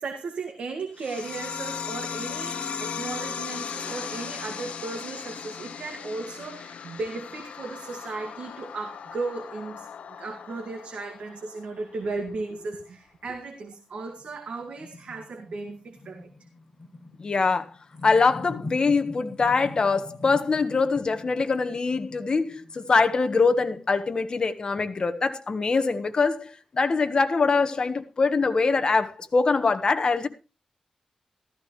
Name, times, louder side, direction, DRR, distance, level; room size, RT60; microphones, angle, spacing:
voice 1, 0.0-16.3, right 3 dB, 70° right, 2.0 m, -35 dB
sound 1, 1.0-12.0, left 7 dB, 90° left, 0.9 m, -37 dB
sound 2, 14.2-24.3, left 2 dB, 20° left, 7.7 m, -44 dB
voice 2, 17.2-17.7 18.0-30.3, left 4 dB, 40° left, 1.4 m, -23 dB
14.5 x 13.5 x 3.2 m
wide cardioid pair, 115°, 2 cm